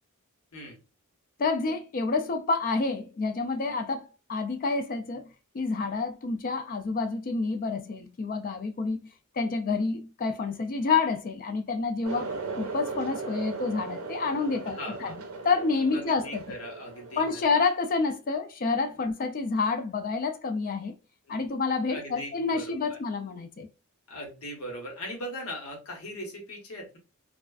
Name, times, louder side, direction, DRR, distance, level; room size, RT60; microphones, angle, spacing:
voice 1, 1.4-9.1 9.4-16.6 17.2-21.0 21.3-23.7, left 4 dB, 40° left, 0.3 m, -29 dB
sound 1, 12.0-17.5, right 4 dB, 80° right, 0.5 m, -37 dB
voice 2, 14.7-15.2 15.9-17.4 21.3-21.4 21.9-23.0 24.1-27.0, left 1 dB, 85° left, 1.0 m, -39 dB
2.4 x 2.3 x 2.3 m
head